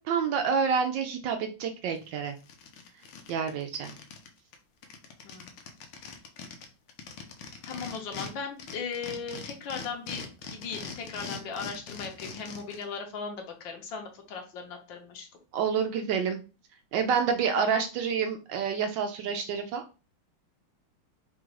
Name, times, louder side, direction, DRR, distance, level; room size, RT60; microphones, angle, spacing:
voice 1, 0.0-2.3 3.3-3.9 15.5-16.4 16.9-20.1, right 6 dB, 75° right, 5 dB, 1.1 m, -28 dB
sound 1, 2.0-2.1 2.4-4.3 4.5-4.6 4.8-8.3 8.6-12.8, left 5 dB, 85° left, 1.6 m, -41 dB
voice 2, 7.6-10.2 10.5-15.3 17.6-17.8, left 5 dB, 70° left, 3 dB, 1.5 m, -37 dB
3.9 x 2.4 x 4.6 m, 0.33 s
omnidirectional pair, 2.2 m